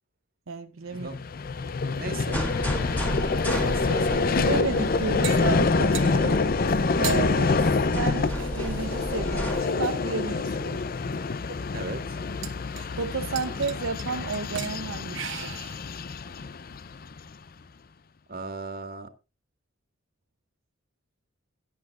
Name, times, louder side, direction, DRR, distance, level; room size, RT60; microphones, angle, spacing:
voice 1, 0.5-1.2 4.4-6.4 7.0-7.6 7.9-10.8 13.0-15.6, right 4 dB, 90° right, 0.7 m, -32 dB
Vehicle, 1.0-17.3, left 4 dB, 45° left, 0.5 m, -26 dB
voice 2, 2.0-2.4 3.6-4.4 6.1-6.4 6.7-6.9 11.7-12.2 18.3-19.1, right 3 dB, 45° right, 1.8 m, -37 dB
sound 1, 2.3-9.6, equal, 10° left, 2.1 m, -33 dB
sound 2, 4.8-6.2 6.8-7.2 8.2-9.8 10.6-10.7 11.1-11.2 11.4-11.6 12.4-13.1 13.4-14.0 14.3-14.8 15.1-15.9, right 10 dB, 70° right, 1.2 m, -39 dB
17.0 x 10.5 x 2.4 m
head